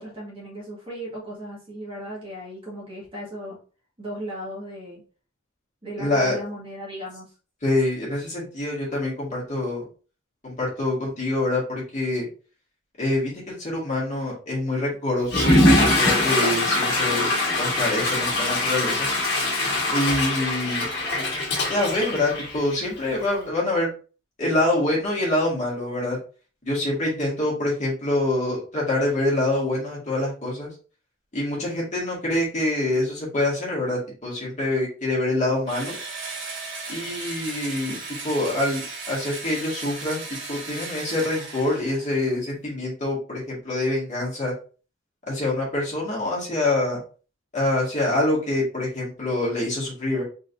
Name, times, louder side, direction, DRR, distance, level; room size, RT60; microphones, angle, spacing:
voice 1, 0.0-3.6 4.0-5.0 5.8-7.3, equal, 25° right, -4 dB, 1.7 m, -36 dB
voice 2, 6.0-6.4 7.6-9.9 10.4-12.3 13.0-15.5 15.7-19.1 19.9-20.9 21.7-23.9 24.4-26.2 26.6-30.7 31.3-35.9 36.9-38.0 38.2-40.2 40.5-44.5 45.3-47.0 47.5-50.2, left 2 dB, 35° left, -5 dB, 2.0 m, -25 dB
Water / Toilet flush, 15.2-23.0, left 1 dB, 55° left, 1.8 m, -22 dB
Engine / Drill, 35.7-42.2, right 3 dB, 60° right, 1.7 m, -36 dB
3.9 x 3.9 x 2.7 m, 0.37 s
head